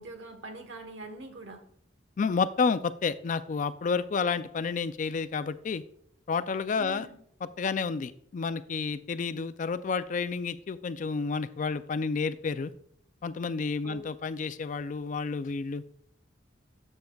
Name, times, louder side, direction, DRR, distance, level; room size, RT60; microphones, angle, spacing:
voice 1, 0.0-1.7 6.8-7.2 13.8-14.1, right 2 dB, 70° right, 6 dB, 1.2 m, -43 dB
voice 2, 2.2-5.8 6.3-7.1 7.6-12.7 13.2-15.8, left 5 dB, 40° left, 12 dB, 0.3 m, -30 dB
11.5 x 6.4 x 2.3 m, 0.67 s
head